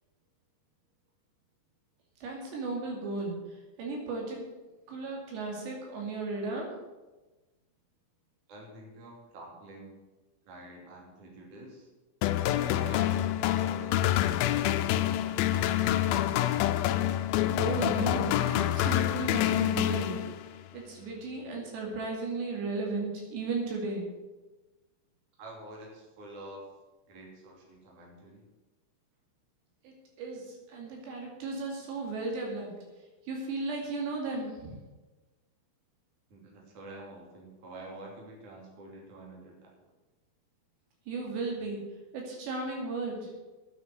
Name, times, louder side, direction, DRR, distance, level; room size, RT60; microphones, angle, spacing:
voice 1, 2.2-4.4 4.9-6.7 17.6-20.2 20.7-24.1 29.8-32.7 33.3-34.8 41.1-41.8 42.1-43.3, right 3 dB, 85° right, -1 dB, 4.8 m, -35 dB
voice 2, 8.5-10.0 10.4-11.9 12.4-13.1 13.5-14.1 14.5-16.1 25.4-26.7 27.1-28.5 36.3-39.7, right 1 dB, 50° right, -1 dB, 4.2 m, -48 dB
sound 1, 12.2-20.6, left 12 dB, 90° left, 2.1 m, -27 dB
9.4 x 8.4 x 9.3 m, 1.2 s
omnidirectional pair, 4.9 m